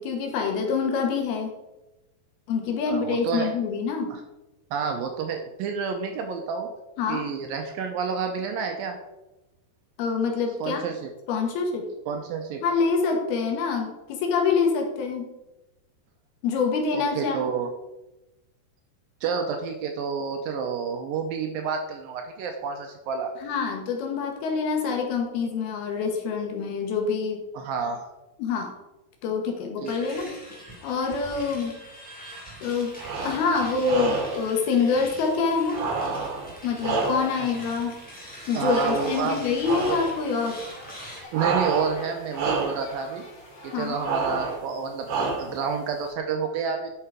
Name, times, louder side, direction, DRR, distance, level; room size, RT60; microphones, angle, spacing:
voice 1, 0.0-1.5 2.5-4.1 7.0-7.3 10.0-10.8 11.3-11.9 12.6-15.3 16.4-17.5 23.4-27.4 28.4-28.7 29.2-30.4 30.8-31.7 32.6-35.9 36.6-38.0 38.5-40.6 43.7-44.0, left 5 dB, 75° left, 2 dB, 3.2 m, -26 dB
voice 2, 2.9-3.5 4.1-4.2 4.7-6.7 7.1-9.0 10.6-11.1 12.1-12.6 16.9-17.7 19.2-23.3 27.5-28.0 29.8-29.9 37.4-37.5 38.6-39.4 39.9-40.0 41.3-43.2 43.6-46.9, right 6 dB, 75° right, 4 dB, 2.3 m, -29 dB
sound 1, 29.8-41.2, equal, 5° left, 1.9 m, -43 dB
sound 2, 32.9-33.5 33.8-34.5 35.7-37.5 38.6-39.3 39.6-40.1 41.3-42.1 42.3-42.9 44.0-44.6 45.1-45.7, right 4 dB, 55° right, 2.0 m, -29 dB
sound 3, 39.5-44.6, left 1 dB, 50° left, 2.8 m, -46 dB
10.5 x 5.7 x 4.9 m, 0.99 s
omnidirectional pair, 4.7 m